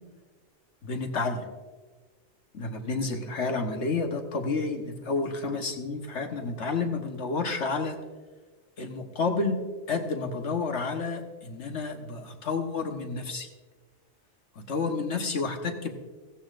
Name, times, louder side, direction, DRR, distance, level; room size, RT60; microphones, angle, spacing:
voice 1, 0.8-1.5 2.5-8.0 8.8-9.6 9.9-13.5 14.5-15.9, left 4 dB, 70° left, 4 dB, 1.5 m, -30 dB
16.0 x 14.5 x 2.5 m, 1.3 s
omnidirectional pair, 1.2 m